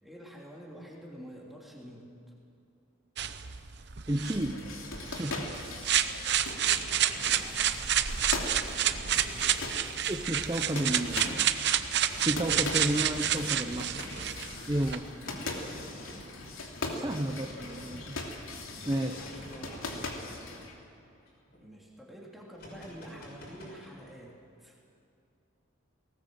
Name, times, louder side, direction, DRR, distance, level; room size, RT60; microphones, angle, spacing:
voice 1, 0.0-2.3 6.1-6.7 7.2-8.0 9.0-9.9 15.0-15.8 18.4-20.6 21.6-24.8, equal, ahead, -3 dB, 2.9 m, -49 dB
sound 1, 3.2-15.0, right 10 dB, 55° right, 0.8 m, -29 dB
voice 2, 4.1-4.6 5.2-5.5 10.1-11.7 12.2-13.9 14.7-15.1 16.9-18.1 18.9-19.2, right 1 dB, 20° right, 5 dB, 0.7 m, -32 dB
sound 2, 4.2-20.7, left 2 dB, 85° left, 2.8 m, -40 dB
sound 3, 6.4-7.9 8.5-10.1 10.7-11.5 12.1-12.7 13.3-14.4 15.2-16.3 17.1-17.9 18.8-21.6 22.5-24.1, equal, 50° left, 6.4 m, -49 dB
19.5 x 19.0 x 7.8 m, 2.6 s
head